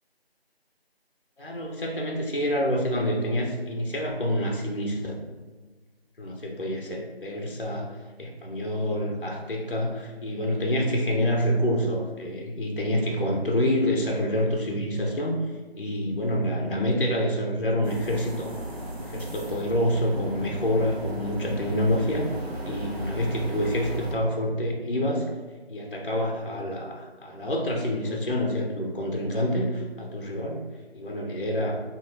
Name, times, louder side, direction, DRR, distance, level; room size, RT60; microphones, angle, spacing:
voice 1, 1.4-5.1 6.2-7.9 8.2-15.4 15.8-18.5 18.9-22.3 22.6-25.3 25.7-30.6 30.9-31.8, equal, 55° left, 0 dB, 0.6 m, -27 dB
sound 1, 17.8-24.1, right 1 dB, 75° right, 1.2 m, -35 dB
4.5 x 2.8 x 2.6 m, 1.3 s
figure-of-eight pair, 180°, 32 cm